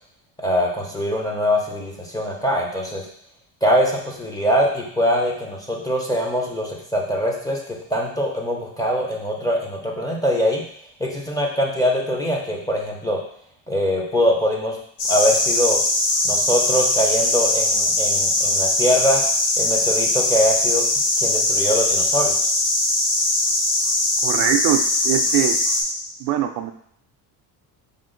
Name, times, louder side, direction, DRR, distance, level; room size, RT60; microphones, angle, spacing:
voice 1, 0.4-3.0 3.6-7.6 7.9-10.6 11.0-13.2 13.7-14.8 15.1-15.8 16.2-19.2 19.6-20.8 21.2-22.3, equal, 10° left, -2 dB, 0.6 m, -22 dB
sound 1, 15.0-25.8, left 2 dB, 65° left, 1.1 m, -20 dB
voice 2, 24.2-25.6 26.2-26.7, right 11 dB, 70° right, 7 dB, 0.5 m, -22 dB
4.9 x 2.5 x 3.8 m, 0.65 s
cardioid pair, 145°, 39 cm